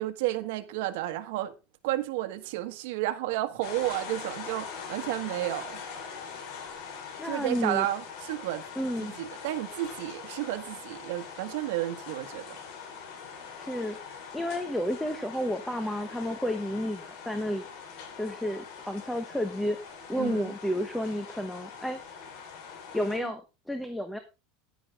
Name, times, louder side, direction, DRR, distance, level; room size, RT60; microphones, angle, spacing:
voice 1, 0.0-1.5 1.8-5.8 7.2-8.6 9.0-12.6 20.2-20.5 23.2-23.3, right 15 dB, 70° right, 1.5 m, -32 dB
sound 1, 3.6-23.2, left 6 dB, 55° left, 4.3 m, -43 dB
voice 2, 7.2-7.9 8.8-9.2 13.6-17.7 18.2-19.8 20.1-22.0 22.9-23.4 23.7-24.2, equal, 5° left, 1.0 m, -31 dB
10.5 x 9.9 x 3.7 m
supercardioid pair, 145°, 0 cm